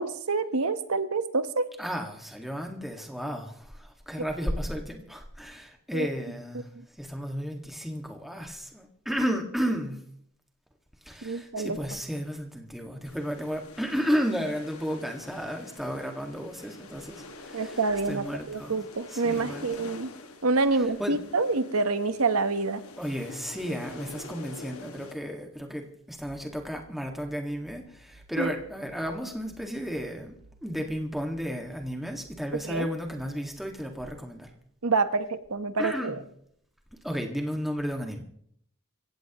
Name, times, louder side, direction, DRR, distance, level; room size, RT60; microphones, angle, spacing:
voice 1, 0.0-1.7 4.2-4.3 5.9-6.1 11.2-11.8 17.5-20.1 20.4-22.8 28.4-28.5 32.6-32.9 34.8-36.1, right 3 dB, 85° right, 11 dB, 1.1 m, -27 dB
voice 2, 1.8-6.7 7.0-10.1 11.0-17.8 18.1-18.8 19.1-19.9 20.7-21.2 23.0-34.5 35.8-36.2 37.0-38.2, equal, ahead, 2 dB, 1.8 m, -33 dB
sound 1, 13.0-25.1, left 2 dB, 85° left, 1.8 m, -46 dB
sound 2, 26.3-33.6, right 1 dB, 65° right, 4.1 m, -57 dB
27.0 x 16.0 x 3.0 m, 0.69 s
head